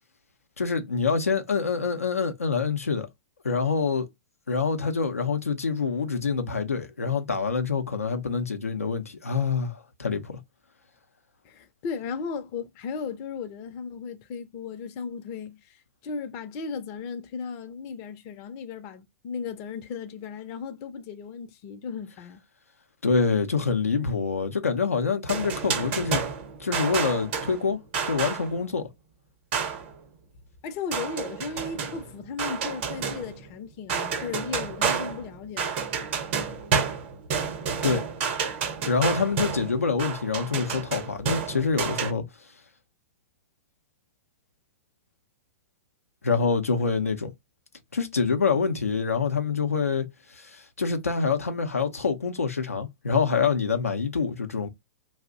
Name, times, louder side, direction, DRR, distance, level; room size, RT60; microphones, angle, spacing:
voice 1, 0.6-3.1 3.4-4.1 4.5-10.4 23.0-26.3 26.6-27.8 28.1-28.9 37.8-38.0 38.8-42.2 46.2-47.3 47.9-50.1 50.4-54.7, left 5 dB, 85° left, 0.5 m, -26 dB
voice 2, 11.4-22.4 30.6-35.7, left 5 dB, 40° left, 0.5 m, -36 dB
sound 1, 25.3-28.6 29.5-30.0 30.9-33.6 33.9-42.1, right 6 dB, 50° right, 0.7 m, -30 dB
2.5 x 2.0 x 3.6 m
figure-of-eight pair, 105°, 8 cm